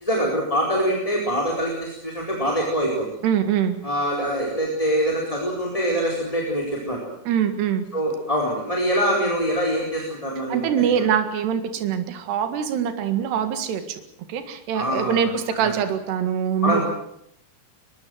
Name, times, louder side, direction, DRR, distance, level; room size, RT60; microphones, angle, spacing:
voice 1, 0.0-3.1 3.8-7.0 7.9-11.1 14.7-15.3 15.6-15.7 16.6-16.8, equal, 10° left, -1 dB, 4.0 m, -24 dB
voice 2, 3.2-3.8 7.3-7.9 10.5-14.0 14.3-16.8, right 8 dB, 80° right, 8 dB, 3.9 m, -23 dB
23.0 x 22.5 x 7.8 m, 0.73 s
omnidirectional pair, 4.8 m